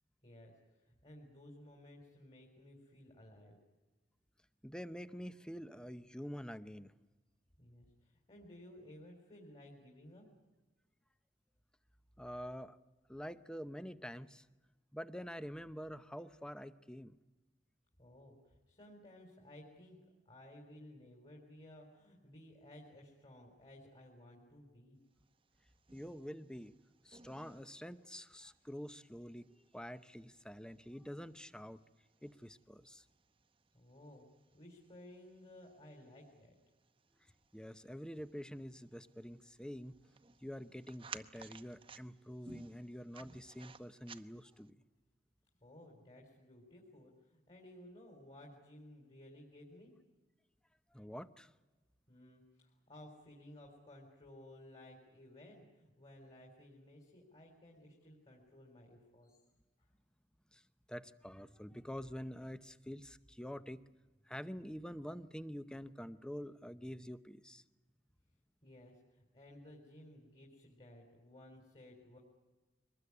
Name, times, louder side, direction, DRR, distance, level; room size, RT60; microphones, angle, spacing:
voice 1, 0.2-3.6 7.6-10.3 18.0-20.0 20.3-25.0 33.7-34.2 34.5-36.6 45.6-49.9 52.1-59.4 68.6-72.2, left 1 dB, 35° left, 1 dB, 3.9 m, -57 dB
voice 2, 4.6-6.9 12.2-12.8 13.1-14.5 14.9-17.2 25.9-26.8 27.0-31.8 32.2-33.0 37.5-40.0 40.4-44.8 50.9-51.5 60.5-60.6 60.9-63.8 64.3-67.6, equal, 5° left, 12 dB, 0.7 m, -47 dB
sound 1, 25.3-44.7, right 5 dB, 30° right, 0.9 m, -59 dB
23.5 x 20.0 x 9.7 m, 1.2 s
head